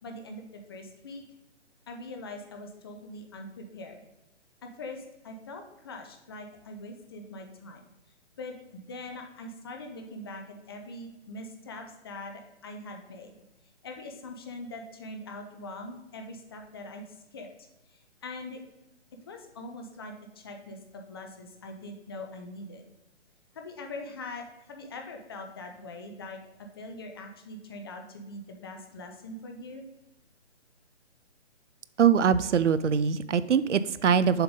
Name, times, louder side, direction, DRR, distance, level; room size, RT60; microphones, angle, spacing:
voice 1, 0.0-1.2 1.9-4.0 4.6-7.8 8.4-13.3 13.8-17.5 17.9-18.6 19.3-22.9 23.5-26.4 26.8-29.8, left 2 dB, 20° left, 4 dB, 0.5 m, -42 dB
voice 2, 32.0-34.4, right 7 dB, 80° right, 15 dB, 0.6 m, -23 dB
7.0 x 3.8 x 5.0 m, 0.96 s
figure-of-eight pair, 145°, 35 cm